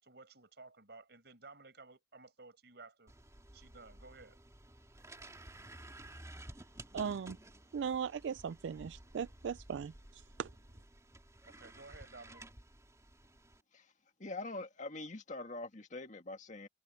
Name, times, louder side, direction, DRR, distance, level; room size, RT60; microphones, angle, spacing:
voice 1, 0.0-3.1 3.5-4.4 11.4-12.4, right 3 dB, 65° right, 6.7 m, -55 dB
sound 1, 3.1-13.6, right 1 dB, 15° right, 2.8 m, -54 dB
voice 2, 6.9-7.4 7.7-10.5, right 7 dB, 85° right, 0.3 m, -38 dB
voice 3, 14.2-16.7, left 2 dB, 45° left, 1.9 m, -44 dB
head